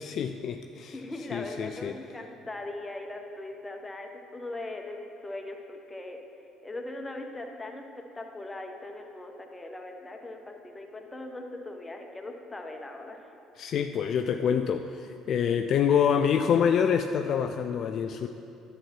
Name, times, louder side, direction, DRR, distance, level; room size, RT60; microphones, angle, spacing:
voice 1, 0.0-1.0 1.3-1.9 13.6-18.3, left 7 dB, 50° left, 7 dB, 0.3 m, -26 dB
voice 2, 0.9-6.2 6.6-13.2, left 2 dB, 15° left, 3 dB, 1.2 m, -40 dB
11.0 x 7.3 x 4.6 m, 2.7 s
figure-of-eight pair, 50°, 0 cm